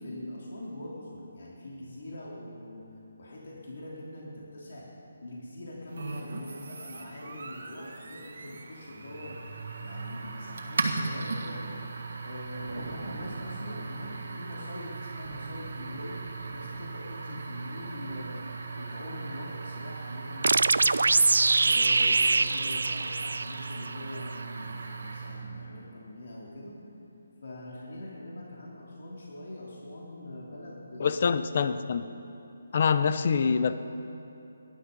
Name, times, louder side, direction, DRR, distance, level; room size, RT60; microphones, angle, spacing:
voice 1, 0.0-2.8 3.2-4.9 5.2-9.4 9.8-11.8 12.2-16.2 16.5-18.4 18.7-21.0 21.6-26.8 27.4-31.2, left 1 dB, 55° left, -5 dB, 3.2 m, -42 dB
sound 1, 5.9-25.5, right 4 dB, 60° right, 1.7 m, -38 dB
Thunder, 10.7-22.3, right 1 dB, 30° right, 2.3 m, -49 dB
sound 2, 20.4-23.9, right 3 dB, 80° right, 0.5 m, -23 dB
voice 2, 31.0-32.1 32.7-33.7, left 6 dB, 40° left, 11 dB, 0.6 m, -25 dB
19.0 x 11.5 x 5.4 m, 2.9 s
hypercardioid pair, 170°, 0 cm